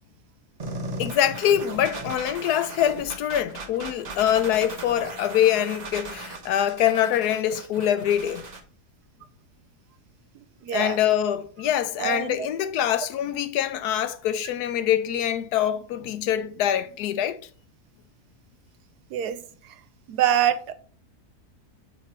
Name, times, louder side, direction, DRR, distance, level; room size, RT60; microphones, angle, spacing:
sound 1, 0.6-8.6, right 2 dB, 35° right, 0.8 m, -37 dB
voice 1, 1.0-8.4 10.7-17.4, left 10 dB, 80° left, 1.1 m, -24 dB
voice 2, 10.6-11.0 12.0-12.5 19.1-19.4 20.1-20.7, right 10 dB, 80° right, 1.2 m, -24 dB
7.3 x 3.5 x 4.3 m
omnidirectional pair, 1.7 m